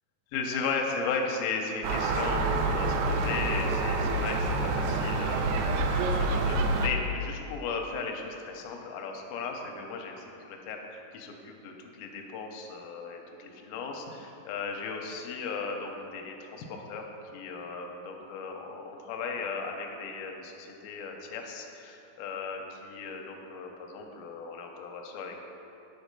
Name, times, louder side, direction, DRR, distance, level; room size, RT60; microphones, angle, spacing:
voice 1, 0.3-17.0 17.3-25.4, left 4 dB, 80° left, 2 dB, 2.3 m, -36 dB
Gull seagull, 1.8-6.9, right 3 dB, 85° right, 2.6 m, -27 dB
8.1 x 4.9 x 5.3 m, 2.9 s
omnidirectional pair, 4.6 m